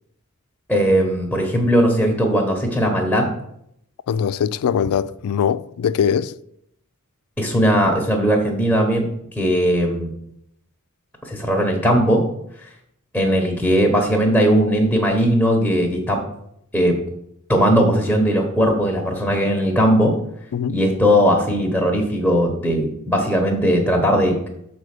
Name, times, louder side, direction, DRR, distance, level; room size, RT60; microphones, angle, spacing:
voice 1, 0.7-3.3 7.4-9.1 9.3-10.1 11.2-12.2 13.1-16.2 16.7-17.0 17.5-20.2 20.7-24.4, equal, 5° left, 1.1 m, -18 dB
voice 2, 4.1-6.3 20.5-20.8, left 8 dB, 90° left, 0.3 m, -21 dB
6.5 x 4.4 x 6.6 m
head